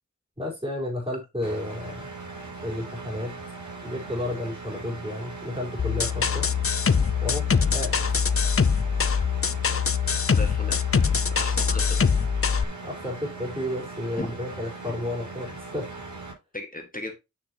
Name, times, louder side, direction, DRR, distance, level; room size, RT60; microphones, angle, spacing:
voice 1, 0.4-2.0 2.6-3.4 3.8-6.5 7.2-7.5 7.7-7.9 12.8-15.9, left 1 dB, 20° right, -3 dB, 4.4 m, -32 dB
Engine, 1.4-16.3, right 3 dB, 90° right, 4.8 m, -40 dB
sound 1, 5.8-12.6, left 6 dB, 50° left, 0.6 m, -23 dB
voice 2, 10.4-10.8 11.4-12.1 14.2-14.3 16.5-17.1, left 2 dB, 30° left, 3 dB, 1.8 m, -36 dB
8.9 x 6.1 x 2.9 m, 0.23 s
wide cardioid pair, 50°, 29 cm